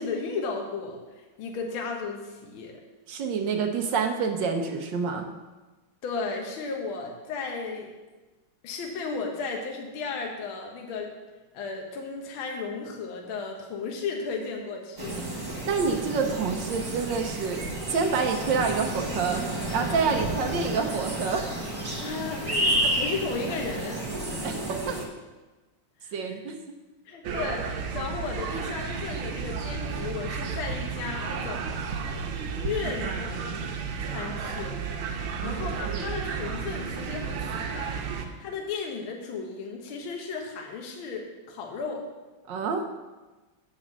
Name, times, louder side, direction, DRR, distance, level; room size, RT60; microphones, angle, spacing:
voice 1, 0.0-2.8 6.0-7.9 8.6-11.1 11.5-15.3 22.0-24.0 26.0-26.4 27.1-31.7 32.1-32.3 32.6-33.6 34.0-42.1, left 4 dB, 75° left, 1 dB, 1.7 m, -35 dB
voice 2, 3.1-5.3 15.6-19.4 19.7-21.5 24.3-25.0 26.1-26.5 35.4-35.6 35.9-36.0 42.5-42.9, right 5 dB, 70° right, 4 dB, 1.3 m, -28 dB
sound 1, 15.0-25.1, right 1 dB, 30° right, 0.4 m, -31 dB
sound 2, 27.2-38.2, right 5 dB, 90° right, 1.7 m, -32 dB
7.5 x 5.0 x 7.3 m, 1.2 s
omnidirectional pair, 2.3 m